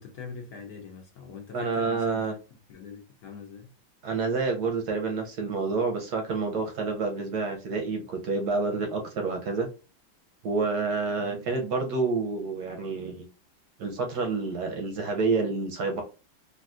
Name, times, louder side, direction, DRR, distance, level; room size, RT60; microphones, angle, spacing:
voice 1, 0.0-2.3 2.7-3.7 11.2-11.5, left 5 dB, 65° left, 0.9 m, -43 dB
voice 2, 1.5-2.3 4.0-9.7 10.4-13.2 13.8-16.0, right 4 dB, 70° right, 1.0 m, -28 dB
3.4 x 2.5 x 2.4 m
omnidirectional pair, 2.1 m